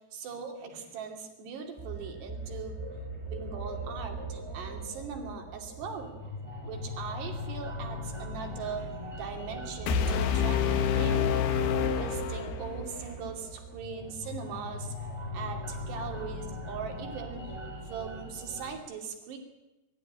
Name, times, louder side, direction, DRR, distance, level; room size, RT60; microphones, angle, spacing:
voice 1, 0.1-2.8 3.3-6.1 6.6-11.3 11.6-14.9 15.3-17.5 17.9-19.4, right 5 dB, 85° right, 3 dB, 4.9 m, -40 dB
sound 1, 1.8-18.8, equal, 5° right, 4.8 m, -39 dB
sound 2, 9.9-12.9, left 8 dB, 75° left, 3.4 m, -27 dB
24.5 x 14.0 x 9.7 m, 1.0 s
omnidirectional pair, 4.7 m